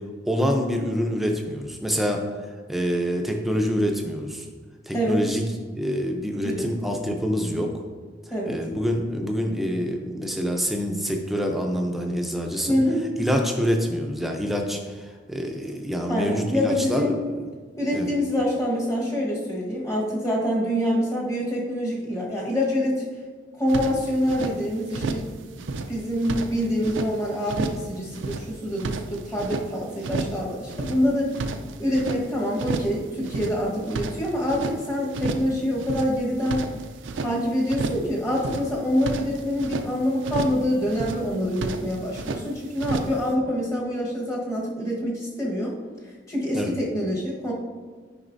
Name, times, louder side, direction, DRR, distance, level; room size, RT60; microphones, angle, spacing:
voice 1, 0.3-2.2 2.7-4.5 4.9-5.4 5.7-7.8 8.5-12.8 13.2-17.2 17.9-18.1 46.5-46.7, equal, ahead, 2 dB, 0.6 m, -26 dB
voice 2, 6.4-6.7 8.3-8.6 12.7-13.1 16.1-17.2 17.8-23.0 23.5-25.3 25.9-31.3 31.8-36.6 37.2-45.7 46.3-47.5, equal, 15° left, -3 dB, 1.2 m, -26 dB
sound 1, 23.7-24.5 24.9-25.3 25.6-27.1 27.5-27.9 28.1-29.7 30.0-30.4 30.7-32.2 32.6-33.0 33.2-34.8 35.1-35.5 35.8-37.3 37.7-38.1 38.3-39.9 40.2-40.6 40.9-41.3 41.5-42.4 42.8-43.2, right 3 dB, 75° right, 0.5 m, -31 dB
9.5 x 5.3 x 2.6 m, 1.5 s
head